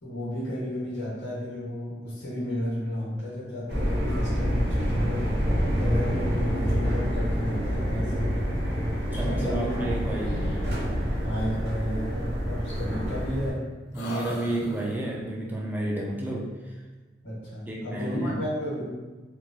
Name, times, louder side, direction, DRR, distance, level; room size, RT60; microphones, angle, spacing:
voice 1, 0.0-5.2 5.8-8.4 9.0-9.7 11.2-13.6 17.2-18.9, equal, 90° left, -9 dB, 1.1 m, -32 dB
sound 1, 3.7-13.5, equal, 60° right, 0.6 m, -27 dB
voice 2, 9.1-10.5 13.9-16.5 17.7-18.4, right 2 dB, 10° right, -2 dB, 0.3 m, -31 dB
sound 2, 10.2-11.4 12.7-13.6 13.9-15.2, left 1 dB, 70° left, 0.3 m, -38 dB
3.0 x 2.0 x 2.5 m, 1.2 s
head